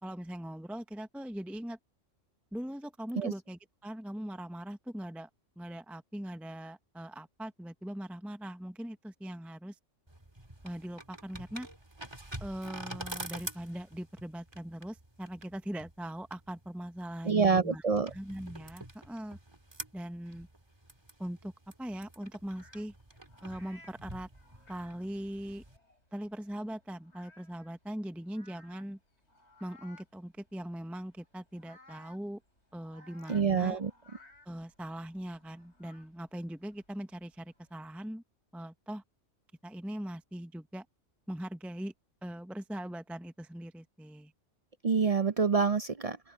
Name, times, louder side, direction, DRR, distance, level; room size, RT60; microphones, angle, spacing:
voice 1, 0.0-1.8 2.5-5.3 5.6-9.8 10.6-11.7 12.4-17.8 18.1-19.4 19.9-20.5 21.2-21.5 21.8-22.9 23.4-24.3 24.7-25.6 26.1-29.0 29.6-32.4 32.7-33.8 34.5-38.2 38.5-39.0 39.6-40.9 41.3-41.9 42.2-44.3, equal, ahead, 0.6 m, -41 dB
sound 1, 10.1-25.8, right 1 dB, 20° right, 1.9 m, -47 dB
voice 2, 17.2-18.1 33.3-33.9 44.8-46.2, right 5 dB, 50° right, 0.4 m, -26 dB
sound 2, 22.5-38.0, left 2 dB, 65° left, 8.5 m, -61 dB
open air
omnidirectional pair, 1.3 m